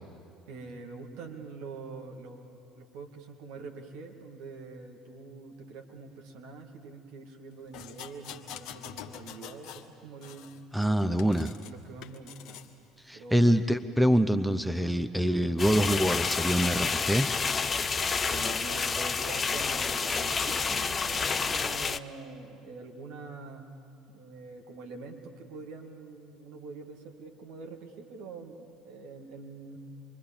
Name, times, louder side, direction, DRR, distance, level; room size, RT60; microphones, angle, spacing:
voice 1, 0.5-10.5 11.0-11.4 11.6-12.6 13.1-13.5 14.8-15.1 18.2-23.7 24.1-29.8, right 4 dB, 65° right, 2 dB, 2.3 m, -45 dB
sound 1, 7.7-9.9 10.2-11.7 12.0-12.7 13.3-13.5, left 10 dB, 60° left, 1.3 m, -45 dB
voice 2, 10.7-11.5 13.1-17.3, equal, ahead, 11 dB, 0.8 m, -25 dB
sound 2, 15.6-22.0, left 5 dB, 30° left, 0.7 m, -29 dB
26.0 x 23.0 x 7.3 m, 2.5 s
figure-of-eight pair, 60°, 0 cm